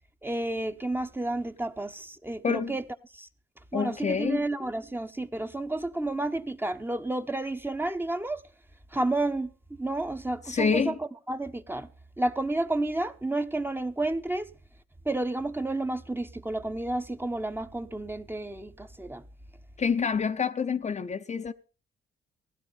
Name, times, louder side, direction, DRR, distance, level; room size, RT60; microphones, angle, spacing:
voice 1, 0.2-2.8 3.1-3.3 3.7-8.4 8.9-9.5 9.8-11.0 11.3-11.9 12.2-14.5 15.0-19.2, right 2 dB, 10° right, 1.0 m, -31 dB
voice 2, 2.4-2.8 3.7-4.4 10.5-11.0 19.8-21.5, left 6 dB, 35° left, 0.8 m, -27 dB
16.0 x 11.5 x 5.6 m
cardioid pair, 90°, 20 cm